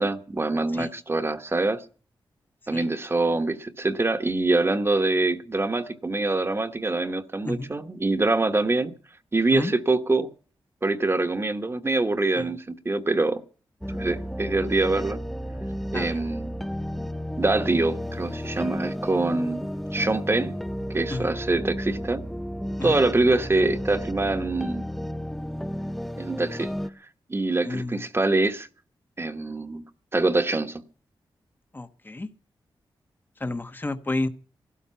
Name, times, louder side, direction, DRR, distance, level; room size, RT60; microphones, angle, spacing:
voice 1, 0.0-1.8 2.7-8.9 9.3-10.3 10.8-13.4 13.9-15.2 15.9-16.5 17.4-20.5 20.9-22.2 22.8-24.8 26.2-26.7 27.3-28.7 29.2-29.8 30.1-30.8, right 2 dB, 30° right, 1.3 m, -24 dB
sound 1, 13.8-26.9, equal, ahead, 0.6 m, -33 dB
voice 2, 27.6-28.0 31.7-32.3 33.4-34.3, left 2 dB, 20° left, 1.1 m, -30 dB
16.0 x 12.5 x 5.7 m
cardioid pair, 75°, 9 cm